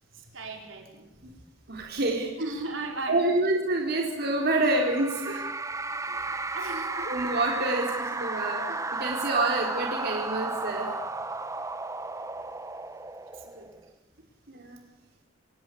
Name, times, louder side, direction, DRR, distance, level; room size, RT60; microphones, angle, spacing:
voice 1, 0.1-1.5 2.4-3.2 6.0-7.1 9.3-9.5 13.3-13.7, right 2 dB, 75° right, 2 dB, 4.9 m, -38 dB
voice 2, 1.7-2.3 3.1-5.4 7.0-10.9 14.5-14.8, right 2 dB, 55° right, 0 dB, 4.1 m, -27 dB
sound 1, 4.2-13.9, right 3 dB, 15° right, 1.1 m, -34 dB
28.5 x 17.5 x 8.5 m, 1.0 s
head